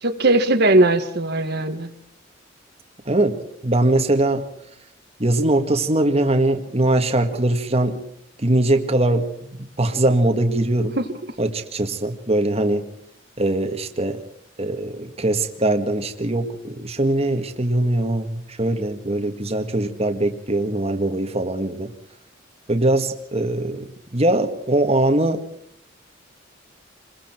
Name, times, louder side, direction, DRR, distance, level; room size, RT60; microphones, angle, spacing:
voice 1, 0.0-1.9 11.0-11.1, right 2 dB, 60° right, 5 dB, 1.7 m, -18 dB
voice 2, 3.1-4.4 5.2-8.0 8.4-9.5 9.8-11.0 11.4-12.9 13.4-14.2 14.6-21.9 22.7-25.4, right 1 dB, 30° right, 5 dB, 1.8 m, -21 dB
28.0 x 21.5 x 4.5 m, 0.71 s
head